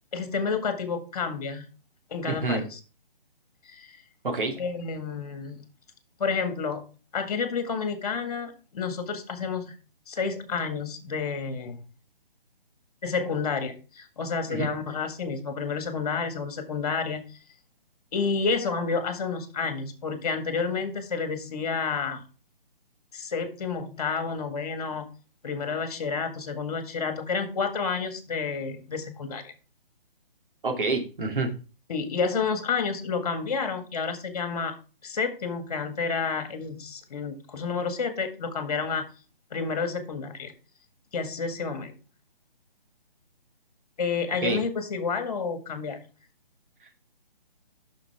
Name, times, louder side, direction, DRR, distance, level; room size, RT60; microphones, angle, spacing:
voice 1, 0.1-1.7 2.1-2.8 3.7-4.0 4.6-5.6 6.2-6.8 7.1-9.7 10.1-11.8 13.0-17.2 18.1-22.2 23.1-25.1 25.4-29.5 31.9-34.8 35.0-39.1 39.5-40.5 41.1-42.0 44.0-46.0, left 5 dB, 40° left, 9 dB, 1.8 m, -30 dB
voice 2, 2.3-2.6 4.2-4.5 14.5-14.7 30.6-31.5 44.4-44.6, right 3 dB, 60° right, 3 dB, 2.2 m, -27 dB
9.6 x 6.4 x 3.4 m, 0.35 s
figure-of-eight pair, 140°, 29 cm